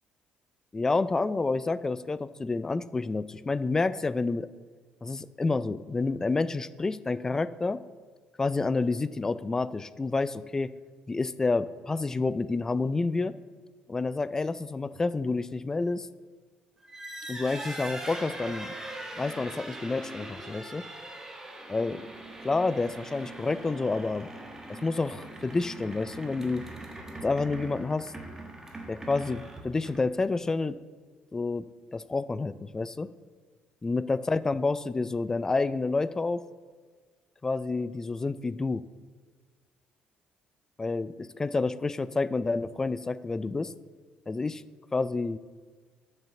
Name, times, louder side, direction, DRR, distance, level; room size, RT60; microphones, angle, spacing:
voice 1, 0.7-4.5 5.0-7.8 8.4-10.7 11.1-13.4 13.9-16.1 17.3-18.7 19.2-20.9 21.7-22.0 22.4-24.3 24.7-26.6 27.2-28.1 28.9-30.8 31.3-31.7 31.9-33.1 33.8-36.4 37.4-38.8 40.8-43.7 44.3-44.6 44.9-45.4, left 3 dB, 15° left, 16 dB, 0.3 m, -29 dB
sound 1, 16.8-30.2, right 1 dB, 15° right, 1.4 m, -41 dB
8.7 x 6.6 x 7.0 m, 1.5 s
cardioid pair, 135°, 3 cm